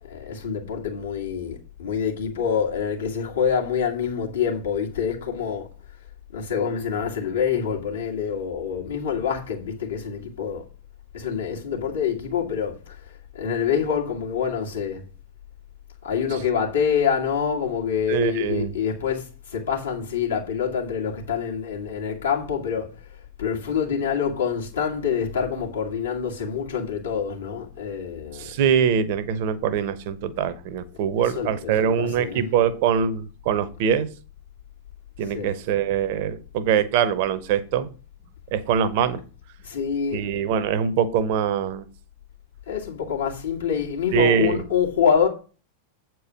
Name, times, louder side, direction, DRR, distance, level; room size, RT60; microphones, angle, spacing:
voice 1, 0.0-5.7 6.3-10.6 11.1-13.0 13.3-15.0 16.0-22.9 23.4-28.5 31.2-32.4 35.3-35.5 39.6-40.2 42.7-45.3, left 7 dB, 70° left, 2.2 m, -26 dB
voice 2, 18.1-18.7 28.3-34.1 35.2-37.9 38.5-39.2 40.1-41.9 44.1-44.6, right 8 dB, 50° right, 0.9 m, -23 dB
8.2 x 4.6 x 6.2 m
figure-of-eight pair, 90°, 0 cm